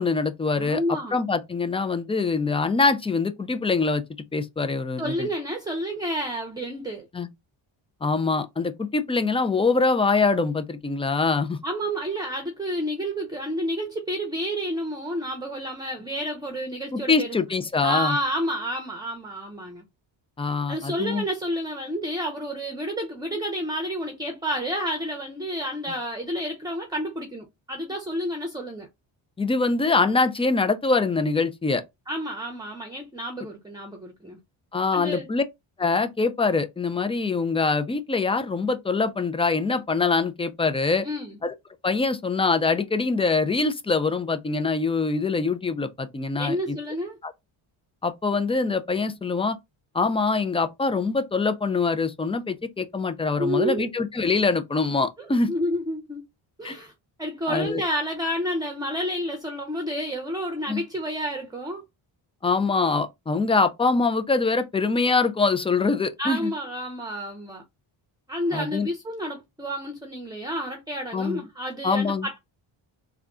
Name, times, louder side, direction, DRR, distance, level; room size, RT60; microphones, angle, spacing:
voice 1, 0.0-0.8 1.1-4.0 4.3-5.3 7.1-7.3 8.0-11.6 16.9-18.2 20.4-21.3 29.4-31.8 34.7-35.4 35.8-41.1 41.4-41.5 41.8-46.8 47.2-47.3 48.0-49.6 49.9-55.5 56.6-56.8 57.5-57.8 60.7-60.8 62.4-66.5 68.5-68.9 71.1-71.4 71.8-72.3, left 4 dB, 15° left, 0.3 m, -24 dB
voice 2, 0.6-1.2 5.0-7.1 11.6-17.4 17.8-19.8 20.7-28.9 32.1-34.4 34.9-35.3 41.0-41.4 46.4-47.2 53.4-53.9 55.2-56.2 56.6-56.9 57.2-61.8 66.2-67.6 68.3-72.4, equal, 10° right, 0.7 m, -30 dB
3.6 x 2.2 x 3.6 m
cardioid pair, 100°, 47 cm